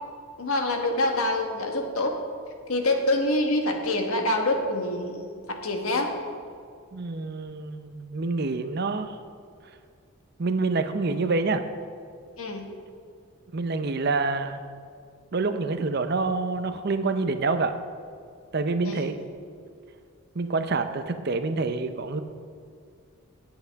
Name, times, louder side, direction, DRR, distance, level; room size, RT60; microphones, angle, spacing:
voice 1, 0.4-2.2 2.7-5.2 5.6-6.1 12.4-12.7 18.8-19.1, left 1 dB, 80° left, 3 dB, 1.4 m, -26 dB
voice 2, 6.9-9.2 10.4-11.6 13.5-14.6 15.3-17.7 18.5-19.2 20.3-22.2, right 3 dB, 50° right, 9 dB, 0.6 m, -27 dB
17.5 x 8.0 x 3.5 m, 2.2 s
head